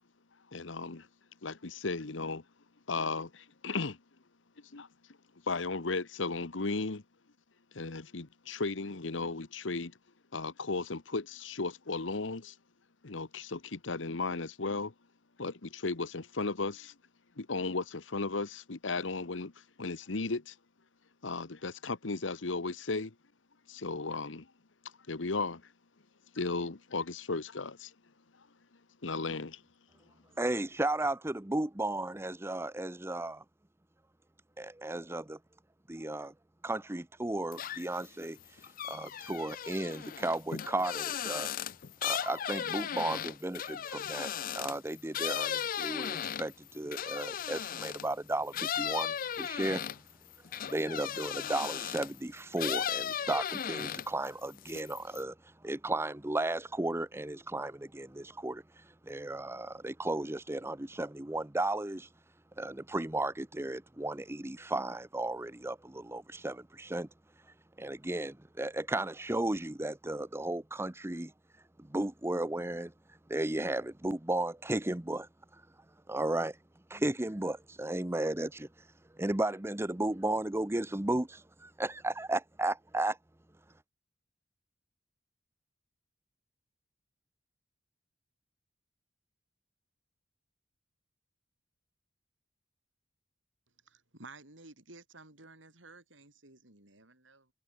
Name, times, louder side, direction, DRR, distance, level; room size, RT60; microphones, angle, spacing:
voice 1, 0.5-1.1 1.4-2.4 2.9-4.0 4.7-4.9 5.5-7.0 7.7-9.9 10.3-12.5 13.0-14.9 15.4-16.9 17.4-19.5 19.8-20.5 21.2-23.1 23.7-24.5 25.1-25.6 26.3-27.9 29.0-29.6, left 3 dB, 80° left, 1.2 m, -35 dB
voice 2, 30.4-33.4 34.6-35.4 35.9-36.3 36.6-38.4 38.9-41.5 42.0-49.8 50.6-55.3 55.6-58.6 59.1-62.1 62.6-67.1 67.8-71.3 71.8-72.9 73.3-75.3 76.1-76.6 76.9-78.7 79.2-83.2, right 2 dB, 15° right, 0.9 m, -34 dB
sound 1, 37.5-38.1 38.4-48.1 48.5-52.2 52.6-54.3 54.6-55.2, left 9 dB, 45° left, 0.5 m, -36 dB
voice 3, 93.9-97.5, right 3 dB, 80° right, 6.0 m, -54 dB
head